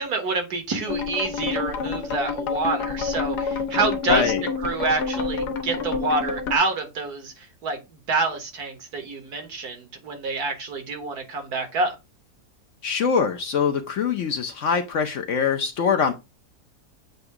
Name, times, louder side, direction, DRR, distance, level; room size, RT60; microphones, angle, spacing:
voice 1, 0.0-4.3 4.6-12.0, right 3 dB, 75° right, 1.8 m, -27 dB
sound 1, 0.9-6.6, left 5 dB, 90° left, 1.5 m, -28 dB
voice 2, 4.1-4.4 12.8-16.1, left 6 dB, 60° left, 0.8 m, -23 dB
7.8 x 2.6 x 4.7 m
omnidirectional pair, 1.7 m